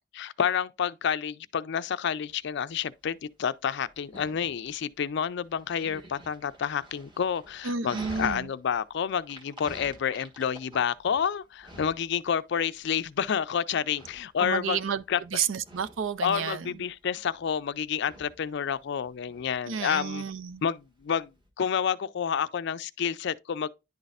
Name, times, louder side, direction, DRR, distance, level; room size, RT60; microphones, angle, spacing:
voice 1, 0.1-14.8 15.1-15.2 16.2-20.2 20.6-21.3 21.6-23.7, left 7 dB, 65° left, 0.4 m, -29 dB
Dog, 2.3-21.5, right 1 dB, 25° right, 1.5 m, -50 dB
voice 2, 7.6-8.5 14.4-15.0 15.3-16.8 19.7-20.6, right 6 dB, 80° right, 0.5 m, -31 dB
10.5 x 4.1 x 2.5 m
head